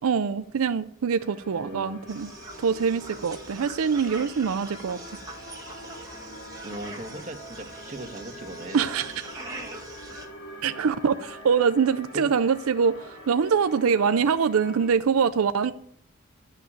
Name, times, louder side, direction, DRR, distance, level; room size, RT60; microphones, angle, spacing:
voice 1, 0.0-2.3 2.6-5.0 8.7-9.2 10.6-15.7, right 6 dB, 85° right, 0.5 m, -24 dB
sound 1, 1.2-14.9, left 1 dB, 55° left, 2.5 m, -44 dB
voice 2, 1.6-2.0 6.6-8.9 12.1-12.3, right 1 dB, 35° right, 1.6 m, -38 dB
sound 2, 2.1-10.3, right 2 dB, 15° right, 1.7 m, -43 dB
11.5 x 5.8 x 9.0 m
head